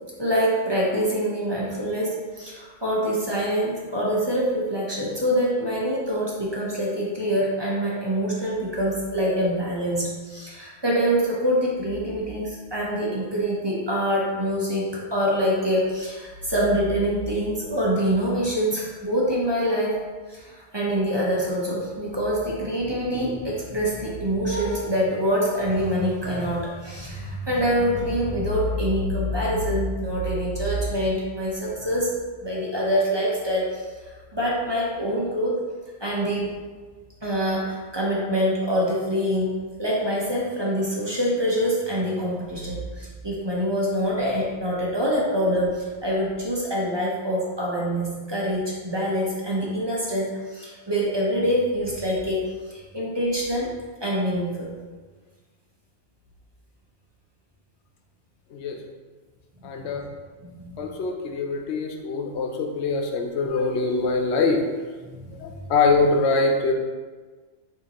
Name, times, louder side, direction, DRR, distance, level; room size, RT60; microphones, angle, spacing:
voice 1, 0.2-14.8 15.1-20.0 20.3-32.1 32.4-33.9 34.3-35.5 36.0-36.5 37.2-53.7 54.0-54.7 60.4-60.8 65.1-65.5, equal, 25° right, -5 dB, 0.8 m, -25 dB
voice 2, 59.6-60.0 60.8-64.6 65.4-66.7, left 3 dB, 85° left, 3 dB, 0.9 m, -23 dB
6.4 x 2.8 x 2.9 m, 1.4 s
omnidirectional pair, 1.1 m